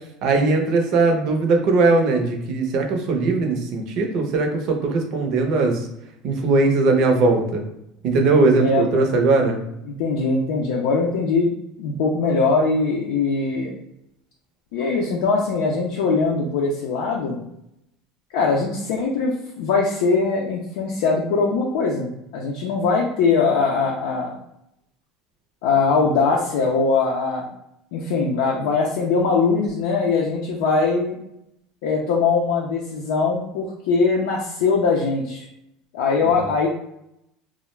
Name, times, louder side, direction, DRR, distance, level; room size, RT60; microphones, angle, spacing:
voice 1, 0.2-5.8 6.2-7.6 8.0-9.6, right 3 dB, 55° right, 3 dB, 0.6 m, -19 dB
voice 2, 8.6-9.0 10.0-11.5 11.8-13.8 14.7-17.4 18.3-24.3 25.6-27.5 27.9-31.2 31.8-35.4 35.9-36.7, left 4 dB, 80° left, -2 dB, 0.4 m, -21 dB
2.3 x 2.1 x 3.1 m, 0.81 s
supercardioid pair, 130°, 0 cm